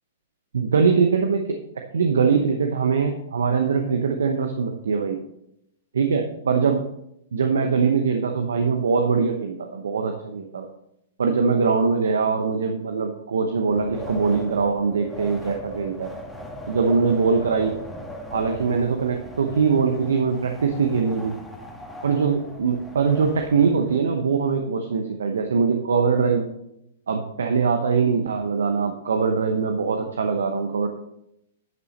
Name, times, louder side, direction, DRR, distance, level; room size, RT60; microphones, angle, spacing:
voice 1, 0.5-1.4 1.9-5.2 6.0-6.8 7.3-10.7 11.2-16.1 16.7-17.8 18.3-21.4 22.0-26.4 27.1-30.9, right 5 dB, 75° right, 5 dB, 0.9 m, -22 dB
Wind, 13.6-24.0, left 1 dB, 5° left, 1.5 m, -38 dB
10.5 x 5.7 x 4.2 m, 0.80 s
hypercardioid pair, 115°, 0 cm